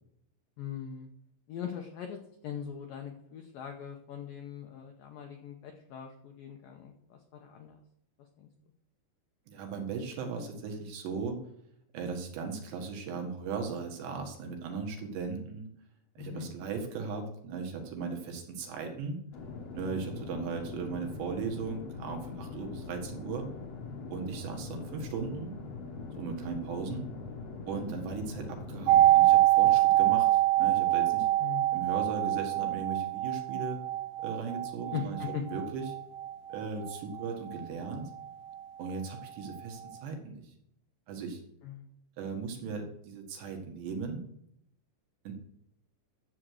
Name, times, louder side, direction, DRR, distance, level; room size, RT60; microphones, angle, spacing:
voice 1, 0.6-1.1 1.5-7.8 8.4-8.5 16.2-16.5 31.4-31.8 34.9-35.4 41.6-41.9, left 8 dB, 85° left, 3 dB, 2.0 m, -41 dB
voice 2, 9.5-11.4 11.9-15.7 16.2-19.2 19.7-23.5 24.1-25.6 26.2-27.0 27.7-31.3 31.7-33.8 34.2-35.9 36.5-38.1 38.8-40.5 41.1-41.4 42.2-44.2 45.3-45.4, right 5 dB, 70° right, 4 dB, 3.7 m, -37 dB
sound 1, 19.3-29.1, left 4 dB, 65° left, 1.6 m, -42 dB
sound 2, 28.9-38.6 38.9-39.0, right 15 dB, 85° right, 3.2 m, -25 dB
11.5 x 7.5 x 6.5 m, 0.74 s
omnidirectional pair, 5.4 m